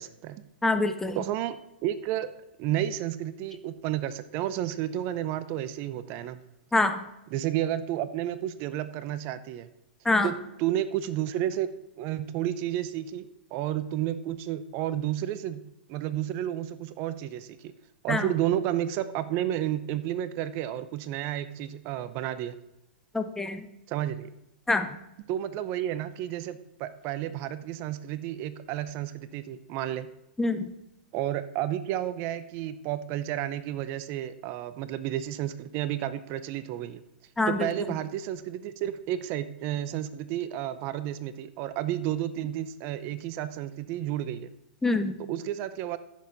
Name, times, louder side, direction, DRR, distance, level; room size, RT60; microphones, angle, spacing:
voice 1, 0.0-0.4 1.2-2.3 2.6-6.4 7.3-9.7 10.2-11.7 12.0-15.6 15.9-17.7 18.0-22.6 23.9-24.3 25.3-30.1 31.1-37.0 37.5-44.5 45.3-46.0, right 12 dB, 35° right, 14 dB, 0.6 m, -31 dB
voice 2, 0.6-1.2 6.7-7.0 10.0-10.3 18.1-18.3 23.1-23.7 24.7-24.9 30.4-30.7 37.4-37.7 44.8-45.1, left 2 dB, 5° left, 8 dB, 0.6 m, -25 dB
14.5 x 6.5 x 4.0 m, 0.88 s
hypercardioid pair, 125°, 6 cm